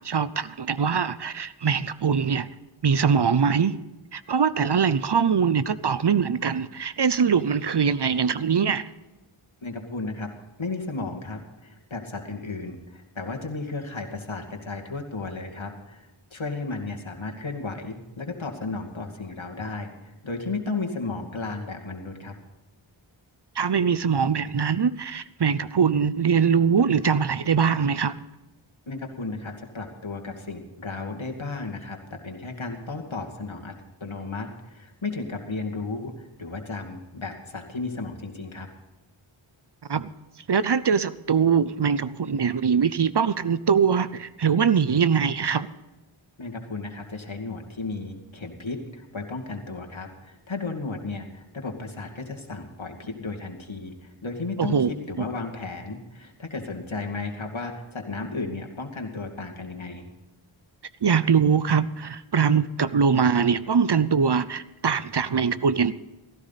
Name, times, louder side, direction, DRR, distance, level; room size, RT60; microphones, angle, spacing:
voice 1, 0.0-2.5 2.8-3.8 4.1-8.8 23.6-28.1 39.9-40.1 40.5-45.7 54.6-54.9 55.2-55.3 61.0-65.9, right 6 dB, 55° right, 16 dB, 0.7 m, -22 dB
voice 2, 9.6-10.3 10.6-22.3 28.9-33.7 34.0-38.7 46.4-60.1, left 3 dB, 70° left, 2 dB, 2.4 m, -34 dB
16.5 x 14.5 x 4.1 m, 1.1 s
wide cardioid pair, 40°, 49 cm